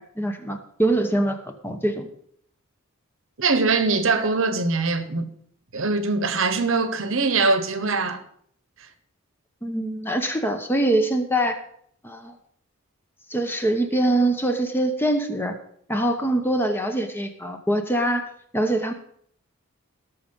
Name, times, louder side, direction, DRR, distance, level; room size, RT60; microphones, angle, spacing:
voice 1, 0.2-2.1 9.6-11.6 12.0-12.3 13.3-15.6 15.9-18.9, right 1 dB, 10° left, 1.0 m, -24 dB
voice 2, 3.4-5.3 5.7-8.2, right 3 dB, 60° right, 1.1 m, -22 dB
18.5 x 6.3 x 5.4 m
head